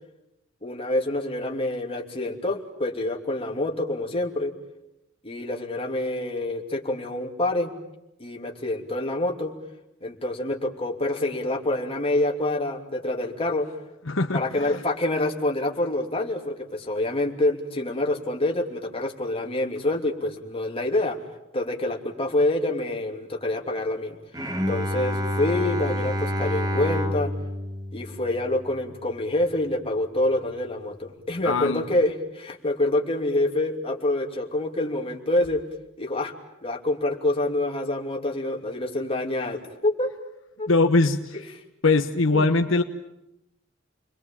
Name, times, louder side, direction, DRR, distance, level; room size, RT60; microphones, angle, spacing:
voice 1, 0.6-4.5 5.2-7.7 8.2-9.5 10.0-13.7 14.3-21.2 21.5-24.2 24.7-27.3 27.9-35.6 36.0-36.3 36.6-40.1 40.6-40.7 42.3-42.5, left 1 dB, 30° left, 1 dB, 3.0 m, -26 dB
voice 2, 14.1-14.7 31.4-31.8 40.7-41.4 41.8-42.8, left 3 dB, 75° left, 6 dB, 1.3 m, -21 dB
Bowed string instrument, 24.3-29.6, left 1 dB, 20° right, 2.1 m, -29 dB
29.5 x 22.0 x 8.8 m, 0.88 s
head